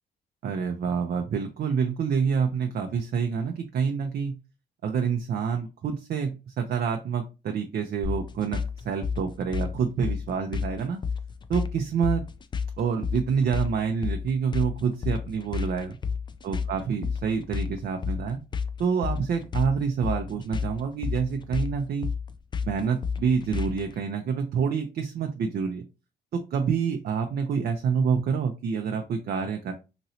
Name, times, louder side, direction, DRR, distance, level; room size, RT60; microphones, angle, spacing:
voice 1, 0.4-4.3 4.8-11.0 11.5-12.2 12.8-16.0 16.4-18.4 18.8-22.1 22.6-25.8 26.3-29.7, right 6 dB, 50° right, 5 dB, 0.5 m, -27 dB
sound 1, 8.0-23.9, left 6 dB, 25° left, 0.3 m, -31 dB
3.0 x 2.8 x 2.7 m, 0.30 s
cardioid pair, 90°, 20 cm